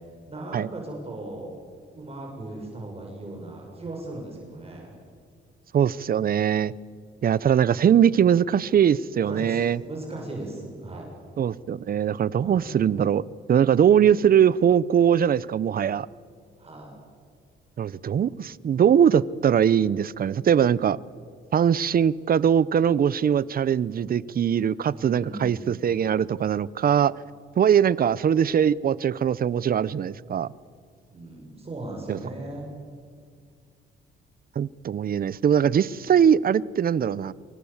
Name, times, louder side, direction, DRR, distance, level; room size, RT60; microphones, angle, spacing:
voice 1, 0.3-1.5 1.9-4.9 9.2-11.1 12.4-12.7 16.6-16.9 24.8-25.7 31.1-32.7, right 2 dB, 30° right, 6.9 m, -37 dB
voice 2, 5.7-6.7 7.2-9.8 11.4-16.1 17.8-21.0 21.5-27.1 27.6-30.5 32.1-32.2 34.6-37.3, right 8 dB, 45° right, 0.8 m, -21 dB
27.5 x 23.5 x 7.3 m
cardioid pair, 90°, 20 cm